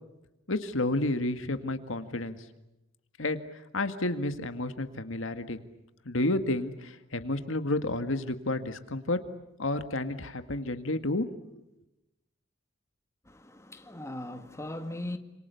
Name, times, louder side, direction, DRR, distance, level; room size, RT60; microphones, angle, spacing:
voice 1, 0.5-2.4 3.2-5.6 6.1-9.2 9.6-11.3 11.5-11.6, left 2 dB, 70° left, 1.9 m, -31 dB
voice 2, 13.3-15.2, left 1 dB, 15° left, 2.1 m, -39 dB
29.0 x 27.0 x 7.0 m
head